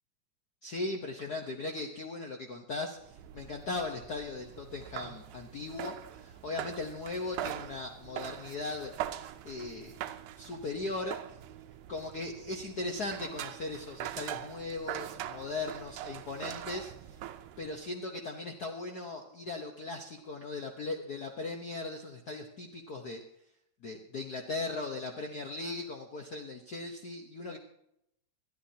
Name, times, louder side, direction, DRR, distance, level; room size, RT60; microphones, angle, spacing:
voice 1, 0.6-8.9 9.4-10.0 10.4-11.2 11.9-17.2 17.6-23.2 23.8-27.6, left 3 dB, 85° left, 2 dB, 0.8 m, -38 dB
sound 1, 3.0-17.9, right 12 dB, 90° right, 2.2 m, -43 dB
21.5 x 12.5 x 2.8 m, 0.78 s
omnidirectional pair, 3.4 m